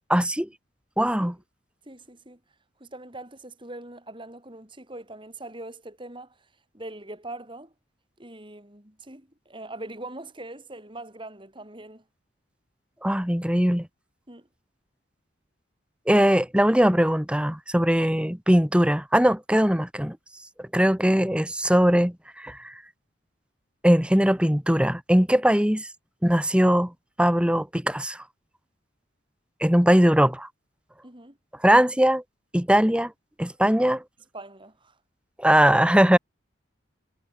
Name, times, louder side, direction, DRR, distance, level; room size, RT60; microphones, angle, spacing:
voice 1, 0.1-0.5 1.0-1.3 13.0-13.9 16.1-20.2 20.6-22.7 23.8-25.9 26.2-26.9 27.2-28.2 29.6-30.5 31.6-32.2 32.5-33.1 33.4-34.0 35.4-36.2, equal, 5° right, 1.9 m, -20 dB
voice 2, 1.8-2.4 2.8-6.4 6.7-7.7 8.2-12.0 14.3-14.5 31.0-31.4 34.3-35.0, right 2 dB, 25° right, 4.7 m, -42 dB
head